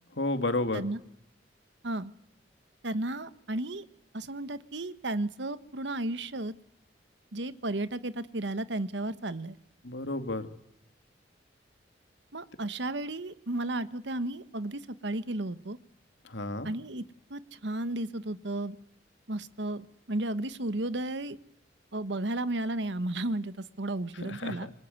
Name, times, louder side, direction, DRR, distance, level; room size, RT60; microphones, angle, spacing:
voice 1, 0.2-0.8 9.8-10.5 16.2-16.7 24.2-24.7, left 2 dB, 80° left, 9 dB, 2.6 m, -31 dB
voice 2, 2.8-3.8 4.1-6.5 7.3-9.6 12.3-15.8 16.6-17.0 17.3-18.8 19.3-21.4 21.9-24.7, right 2 dB, 70° right, 14 dB, 1.3 m, -33 dB
27.0 x 22.5 x 9.6 m, 0.74 s
head